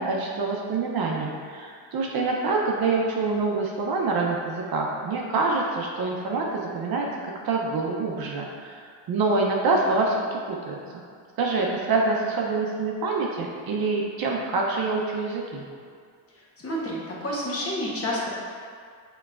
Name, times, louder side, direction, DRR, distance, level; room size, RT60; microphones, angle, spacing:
voice 1, 0.0-8.8 9.1-10.8 11.4-15.6, right 3 dB, 50° right, -1 dB, 0.7 m, -26 dB
voice 2, 16.3-18.3, equal, 30° left, -5 dB, 1.1 m, -30 dB
5.6 x 3.0 x 2.5 m, 2.1 s
cardioid pair, 90°, 47 cm